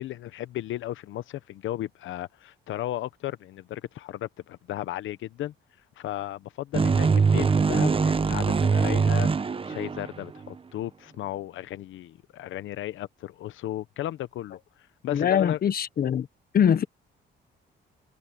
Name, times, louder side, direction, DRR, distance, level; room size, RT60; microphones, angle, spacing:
voice 1, 0.0-5.5 6.0-9.3 9.7-14.6 15.0-15.6, left 13 dB, 80° left, 0.8 m, -35 dB
sound 1, 6.7-10.5, right 5 dB, 25° right, 0.9 m, -23 dB
voice 2, 15.1-16.3 16.5-16.8, left 8 dB, 50° left, 0.9 m, -22 dB
cardioid pair, 90°, 20 cm